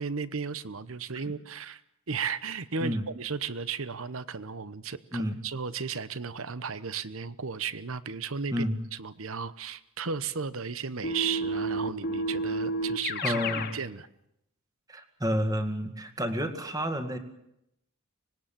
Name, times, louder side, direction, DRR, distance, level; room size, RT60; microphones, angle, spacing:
voice 1, 0.0-1.8 2.1-8.6 9.0-13.3 13.7-14.1, right 5 dB, 65° right, 16 dB, 1.0 m, -34 dB
Keyboard (musical), 11.0-13.8, right 1 dB, 45° left, 2.1 m, -30 dB
voice 2, 13.2-13.7 14.9-17.2, equal, 15° right, 7 dB, 2.0 m, -30 dB
25.0 x 20.0 x 7.5 m, 0.80 s
head